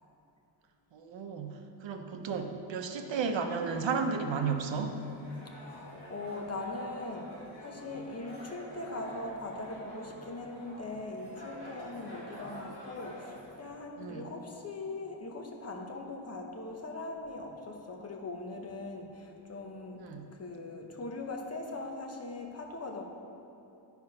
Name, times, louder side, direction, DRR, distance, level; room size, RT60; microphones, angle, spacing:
voice 1, 0.9-5.0 14.0-14.3 20.0-20.3, right 5 dB, 75° right, 5 dB, 0.8 m, -33 dB
sound 1, 3.6-13.7, equal, 55° left, 2.1 m, -48 dB
voice 2, 5.6-20.0 20.4-23.0, left 2 dB, 35° left, 1 dB, 0.9 m, -41 dB
10.0 x 4.7 x 5.3 m, 2.8 s
wide cardioid pair, 155°, 46 cm